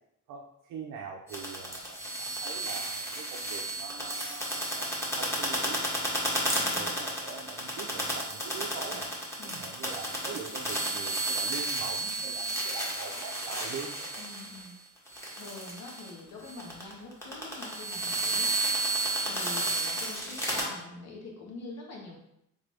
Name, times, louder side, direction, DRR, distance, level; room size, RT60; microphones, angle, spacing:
voice 1, 0.3-6.2 6.5-9.1 9.4-14.2, right 5 dB, 85° right, 0 dB, 0.6 m, -43 dB
sound 1, 1.3-14.7 15.1-16.1 16.4-20.6, right 1 dB, 10° left, 1.4 m, -32 dB
voice 2, 6.5-6.9 9.4-9.7 14.2-14.8 15.3-18.5 19.3-22.2, left 2 dB, 60° left, -2 dB, 1.4 m, -44 dB
3.8 x 3.5 x 3.3 m, 0.80 s
cardioid pair, 90°, 30 cm